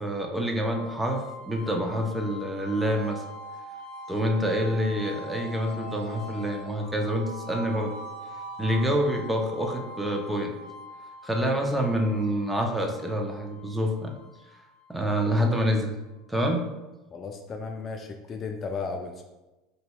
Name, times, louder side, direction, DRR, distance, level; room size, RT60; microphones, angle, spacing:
voice 1, 0.0-3.2 4.1-7.9 8.6-10.5 11.2-14.1 14.9-15.9 16.3-16.7, equal, 10° right, 2 dB, 0.5 m, -27 dB
sound 1, 0.6-15.5, equal, 85° right, 1.0 m, -42 dB
voice 2, 17.1-19.2, left 4 dB, 35° left, 4 dB, 0.3 m, -35 dB
4.0 x 2.7 x 2.2 m, 1.0 s
hypercardioid pair, 85°, 0 cm